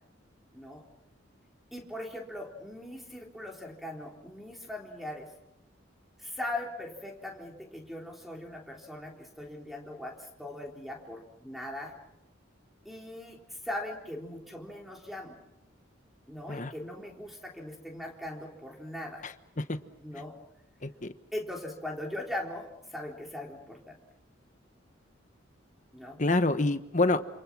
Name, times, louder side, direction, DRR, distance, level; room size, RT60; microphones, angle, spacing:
voice 1, 0.5-0.8 1.7-5.3 6.2-11.9 12.8-15.4 16.3-19.2 20.0-20.4 21.3-24.0 25.9-26.2, left 1 dB, ahead, 0 dB, 3.8 m, -40 dB
voice 2, 19.2-19.8 20.8-21.1 26.2-27.2, left 2 dB, 40° left, 10 dB, 1.2 m, -27 dB
28.0 x 27.5 x 6.2 m, 0.84 s
head